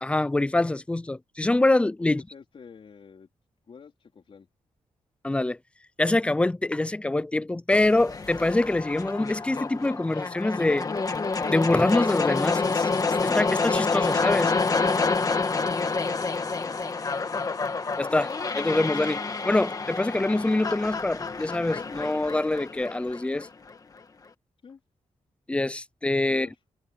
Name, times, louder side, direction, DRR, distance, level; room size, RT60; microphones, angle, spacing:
voice 1, 0.0-2.2 5.2-5.6 6.0-10.9 11.5-14.5 18.0-23.5 25.5-26.5, left 2 dB, 10° left, 0.5 m, -25 dB
voice 2, 2.0-3.3 3.7-4.5 16.1-16.8 24.6-24.8 26.2-26.5, left 6 dB, 45° left, 4.2 m, -48 dB
sound 1, 7.7-23.7, left 4 dB, 30° left, 1.6 m, -28 dB
wide cardioid pair, 180°, 12 cm